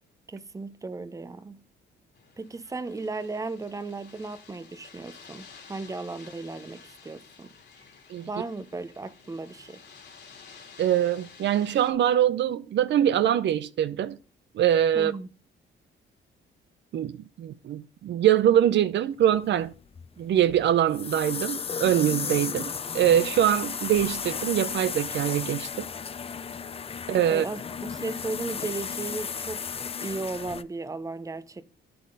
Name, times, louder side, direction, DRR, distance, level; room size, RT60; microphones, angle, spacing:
voice 1, 0.3-1.6 2.4-7.5 8.3-9.8 14.9-15.3 27.3-31.6, right 3 dB, 15° right, 0.7 m, -36 dB
sound 1, 2.1-11.9, left 5 dB, 60° left, 2.7 m, -51 dB
voice 2, 10.8-14.2 14.5-15.1 16.9-19.7 20.2-25.9 27.1-27.4, right 10 dB, 65° right, 0.6 m, -23 dB
sound 2, 19.4-30.6, left 6 dB, 30° left, 0.5 m, -34 dB
8.3 x 7.8 x 3.9 m
cardioid pair, 90°, 20 cm